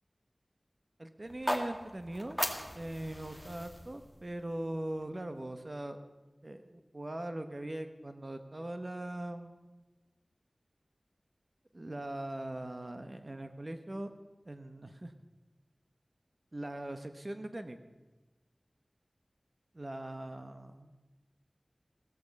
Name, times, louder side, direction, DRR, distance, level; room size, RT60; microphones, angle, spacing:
voice 1, 1.0-2.4 2.7-6.0 6.4-9.8 11.7-14.1 14.5-15.1 16.5-17.8 19.8-21.1, right 1 dB, 40° right, 8 dB, 1.0 m, -41 dB
sound 1, 1.2-5.4, equal, ahead, 1.7 m, -39 dB
16.0 x 14.5 x 5.3 m, 1.2 s
wide cardioid pair, 65°, 0 cm